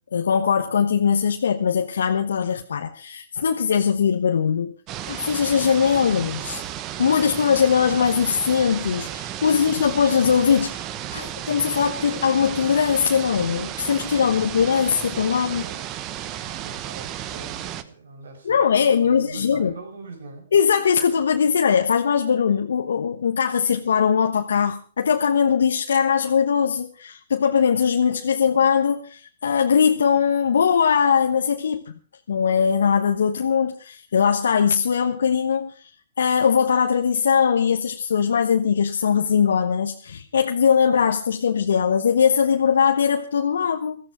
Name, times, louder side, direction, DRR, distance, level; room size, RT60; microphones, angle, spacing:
voice 1, 0.1-4.7 5.1-6.6 7.0-10.8 11.1-15.6 18.5-19.7 20.5-31.9 32.3-35.7 36.2-44.0, left 7 dB, 75° left, 5 dB, 1.2 m, -20 dB
sound 1, 4.9-17.8, right 12 dB, 30° right, 1.1 m, -33 dB
voice 2, 15.3-15.9 16.2-20.5, right 4 dB, 70° right, 5 dB, 5.6 m, -42 dB
15.5 x 14.0 x 5.0 m, 0.39 s
hypercardioid pair, 130°, 0 cm